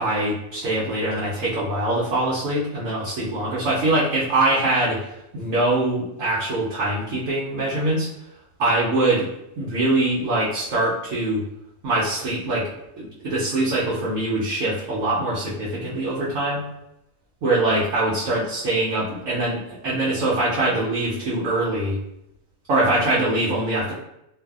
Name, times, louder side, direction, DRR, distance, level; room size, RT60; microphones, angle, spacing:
voice 1, 0.0-5.0 5.3-8.1 8.6-9.3 9.6-11.4 11.8-12.7 13.0-16.6 17.4-22.0 22.7-23.9, right 2 dB, 70° right, -7 dB, 1.0 m, -23 dB
2.5 x 2.3 x 2.3 m, 0.83 s
omnidirectional pair, 1.4 m